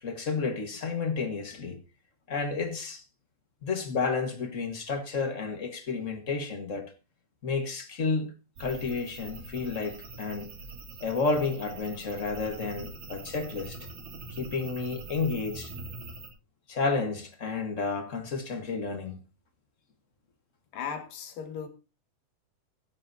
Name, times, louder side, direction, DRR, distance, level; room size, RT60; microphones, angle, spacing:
voice 1, 0.0-1.8 2.3-3.0 3.6-6.9 7.4-8.3 8.6-10.5 11.0-13.9 14.3-15.7 16.7-19.2, left 4 dB, 45° left, 1.0 m, -31 dB
sound 1, 8.6-16.3, right 3 dB, 90° right, 4.7 m, -44 dB
voice 2, 20.7-21.7, left 7 dB, 85° left, 3.5 m, -36 dB
15.0 x 14.0 x 2.7 m
omnidirectional pair, 3.8 m